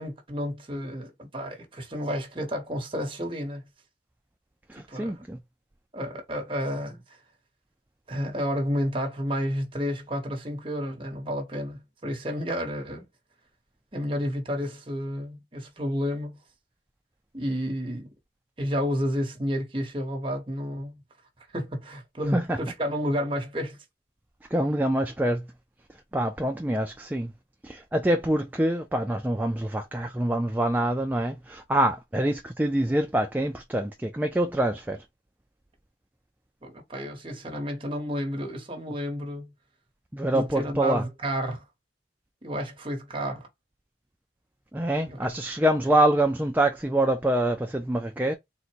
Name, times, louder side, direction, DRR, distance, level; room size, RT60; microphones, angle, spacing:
voice 1, 0.0-3.6 4.8-5.1 5.9-7.0 8.1-13.0 13.9-16.4 17.3-18.1 18.6-20.9 21.5-23.8 36.6-39.5 40.3-41.6 42.4-43.5 45.1-45.3, equal, 30° right, 1.1 m, -31 dB
voice 2, 4.7-5.4 22.3-22.6 24.5-25.4 26.1-27.3 27.6-35.0 40.1-41.0 44.7-48.3, right 1 dB, 10° right, 0.4 m, -25 dB
3.9 x 2.2 x 4.4 m
head